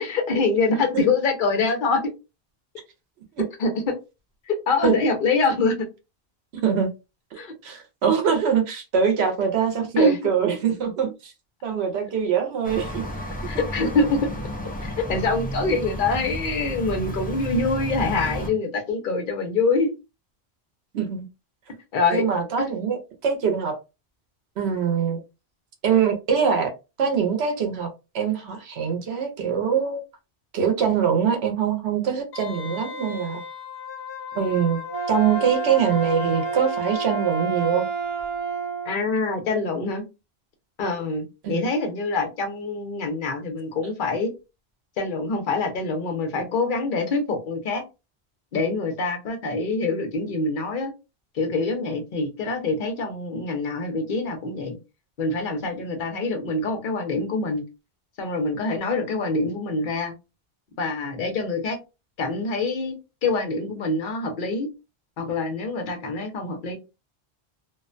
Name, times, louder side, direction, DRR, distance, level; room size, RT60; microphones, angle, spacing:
voice 1, 0.0-2.1 3.6-4.0 4.5-5.9 7.4-7.5 10.0-10.2 13.5-14.3 14.8-19.9 21.9-22.2 22.6-22.7 38.8-40.0 40.8-44.3 45.0-47.8 48.5-50.9 51.3-54.8 55.2-57.6 58.2-60.1 60.8-61.8 62.2-62.9 63.2-64.7 65.2-66.8, left 3 dB, 55° left, 0.8 m, -25 dB
voice 2, 6.5-6.9 7.3-11.3 11.6-13.0 20.9-21.3 22.1-23.8 24.6-25.2 25.8-26.7 27.0-27.9 28.1-30.0 30.5-33.4 34.3-34.8 35.1-37.9 41.4-41.7, right 7 dB, 80° right, 0.9 m, -23 dB
sound 1, 12.6-18.5, equal, 15° left, 0.4 m, -32 dB
Wind instrument woodwind instrument, 32.3-37.9 38.2-38.3, left 7 dB, 80° left, 0.9 m, -37 dB
Wind instrument woodwind instrument 2, 34.8-39.0, right 6 dB, 30° right, 0.9 m, -29 dB
2.4 x 2.1 x 2.4 m
omnidirectional pair, 1.1 m